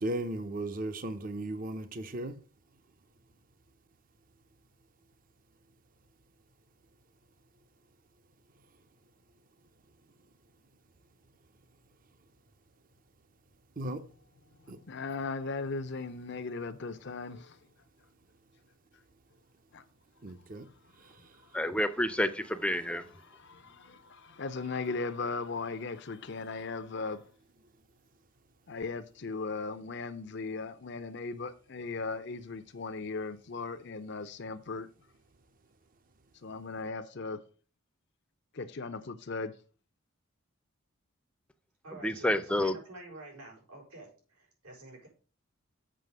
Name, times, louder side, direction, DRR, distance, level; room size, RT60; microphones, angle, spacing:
voice 1, 0.0-2.4 13.8-14.0 14.7-14.8 20.2-20.7 21.0-21.3, right 1 dB, 40° right, 0.8 m, -36 dB
voice 2, 14.9-17.6 19.7-19.8 22.9-27.3 28.7-34.9 36.4-37.4 38.5-39.5, left 4 dB, 55° left, 0.6 m, -37 dB
voice 3, 21.5-23.0 42.0-42.7, left 1 dB, 5° left, 0.6 m, -29 dB
voice 4, 41.8-45.1, right 2 dB, 90° right, 5.8 m, -48 dB
7.6 x 5.7 x 6.7 m
head